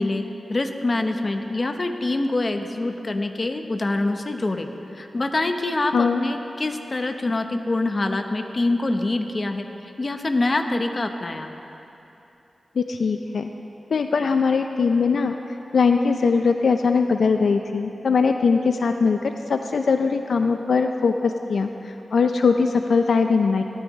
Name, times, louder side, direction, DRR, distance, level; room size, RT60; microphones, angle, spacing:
voice 1, 0.0-9.7 10.0-11.5, left 2 dB, 40° left, 6 dB, 0.8 m, -25 dB
voice 2, 12.8-13.5 13.9-15.4 15.7-23.6, left 5 dB, 80° left, 6 dB, 0.4 m, -21 dB
17.5 x 13.0 x 3.1 m, 3.0 s
wide cardioid pair, 75°, 0 cm